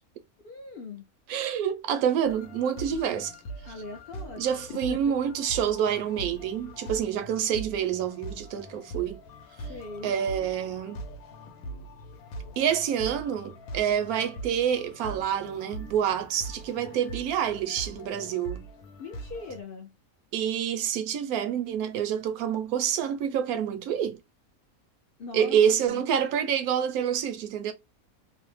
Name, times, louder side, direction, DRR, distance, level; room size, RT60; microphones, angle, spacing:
voice 1, 0.4-1.1 3.6-4.5 4.9-5.1 9.7-10.1 19.0-19.9 25.2-25.6 25.8-26.0, left 3 dB, 60° left, 0.6 m, -40 dB
voice 2, 1.3-3.3 4.4-9.2 10.0-11.0 12.6-18.6 20.3-24.2 25.3-27.7, right 9 dB, 90° right, 1.1 m, -27 dB
sound 1, 2.2-19.6, right 1 dB, 85° left, 1.1 m, -42 dB
2.8 x 2.0 x 3.0 m
omnidirectional pair, 1.5 m